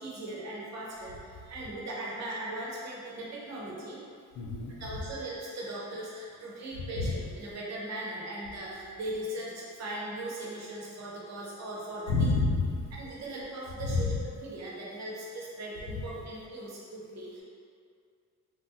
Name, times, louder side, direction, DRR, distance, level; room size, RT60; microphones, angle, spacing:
voice 1, 0.0-4.0 4.8-12.3 12.9-17.4, right 1 dB, 60° right, -5 dB, 0.8 m, -39 dB
voice 2, 4.3-4.7 7.0-7.1 12.1-12.9 13.8-14.2 15.9-16.0, left 3 dB, 80° left, 0 dB, 0.5 m, -28 dB
3.8 x 2.1 x 2.6 m, 2.3 s
cardioid pair, 90°, 30 cm